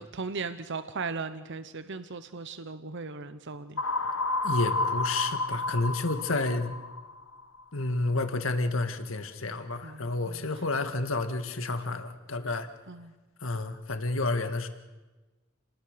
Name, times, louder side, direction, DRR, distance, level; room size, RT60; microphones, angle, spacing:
voice 1, 0.0-3.8 9.8-10.4 12.9-13.1, right 4 dB, 60° right, 11 dB, 1.0 m, -37 dB
sound 1, 3.8-7.6, left 2 dB, 90° left, 1.3 m, -31 dB
voice 2, 4.4-6.7 7.7-12.7 13.4-14.7, left 2 dB, 70° left, 8 dB, 1.9 m, -30 dB
30.0 x 20.0 x 6.8 m, 1.2 s
head